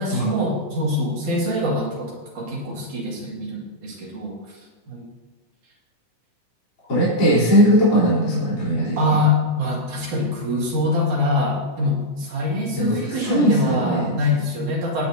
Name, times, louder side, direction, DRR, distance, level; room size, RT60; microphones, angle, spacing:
voice 1, 0.0-4.4 4.9-5.1 9.0-15.0, left 2 dB, 60° right, -4 dB, 3.7 m, -24 dB
voice 2, 6.9-9.2 12.7-14.2, equal, 30° left, -10 dB, 4.3 m, -19 dB
21.0 x 9.1 x 2.8 m, 1.3 s
omnidirectional pair, 4.2 m